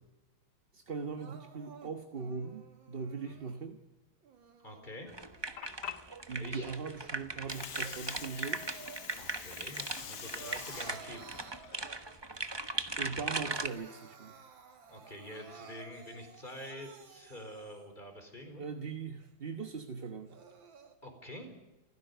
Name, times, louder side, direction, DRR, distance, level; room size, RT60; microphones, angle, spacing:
voice 1, 0.7-3.8 6.3-8.7 13.0-14.4 18.6-20.4, right 5 dB, 35° right, 5 dB, 1.1 m, -40 dB
Crying sobbing, 1.2-3.6 4.2-6.0 6.5-9.4 9.7-12.4 12.8-12.9 13.2-18.0 18.5-18.6 19.2-19.3 20.0-20.9, right 6 dB, 75° right, 2.5 m, -54 dB
voice 2, 4.6-5.1 6.4-6.8 9.2-11.3 14.9-18.6 21.0-21.5, left 1 dB, 25° left, 5 dB, 4.5 m, -47 dB
sound 1, 5.1-13.7, right 3 dB, 20° right, 0.8 m, -39 dB
Water, 5.2-13.2, left 8 dB, 60° left, 1.7 m, -47 dB
28.5 x 15.5 x 6.8 m, 1.0 s
omnidirectional pair, 2.1 m